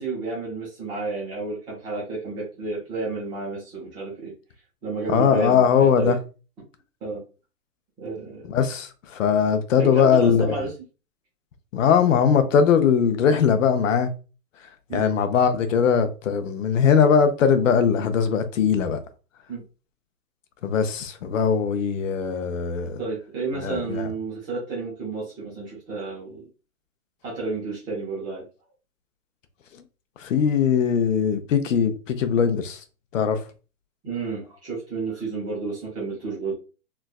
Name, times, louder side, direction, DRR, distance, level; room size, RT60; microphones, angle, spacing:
voice 1, 0.0-4.3 4.8-6.2 7.0-7.2 8.0-8.5 9.8-10.7 14.9-15.1 19.5-19.6 23.0-26.5 27.2-28.5 34.0-36.5, right 3 dB, 10° right, 0.5 m, -31 dB
voice 2, 5.1-6.2 8.5-10.5 11.7-14.1 14.9-19.0 20.6-23.0 23.6-24.1 30.2-32.8 33.1-33.4, left 7 dB, 60° left, 0.6 m, -20 dB
3.2 x 2.3 x 2.3 m
hypercardioid pair, 140°, 44 cm